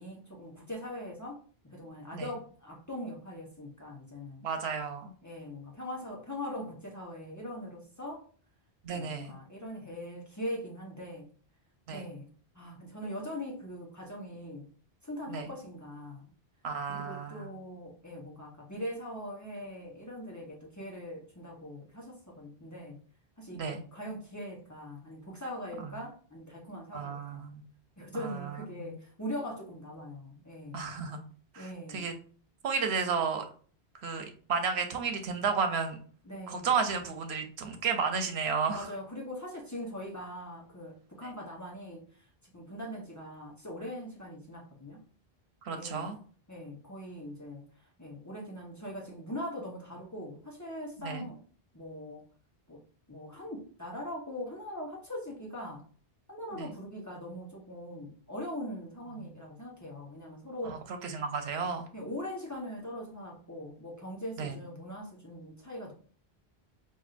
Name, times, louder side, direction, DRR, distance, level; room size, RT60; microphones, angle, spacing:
voice 1, 0.0-4.5 5.2-8.3 8.9-11.3 11.9-12.3 12.5-14.7 15.0-16.3 16.9-23.0 23.4-27.5 28.0-30.8 31.5-32.1 36.3-36.7 38.7-45.0 45.7-46.1 46.5-47.7 48.0-51.4 51.7-52.2 52.7-55.9 56.3-60.8 61.9-65.9, left 1 dB, 20° left, 0.9 m, -41 dB
voice 2, 4.4-5.1 8.8-9.3 11.9-12.0 15.3-15.5 16.6-17.5 23.5-23.8 25.8-25.9 26.9-27.6 28.1-28.5 28.8-29.0 30.7-31.2 31.5-32.1 32.6-33.4 34.0-36.0 36.5-38.9 45.6-46.2 51.0-51.3 56.5-56.7 59.2-59.3 60.6-61.9 64.4-64.6, right 5 dB, 90° right, 1.0 m, -33 dB
5.5 x 2.6 x 2.5 m
omnidirectional pair, 1.1 m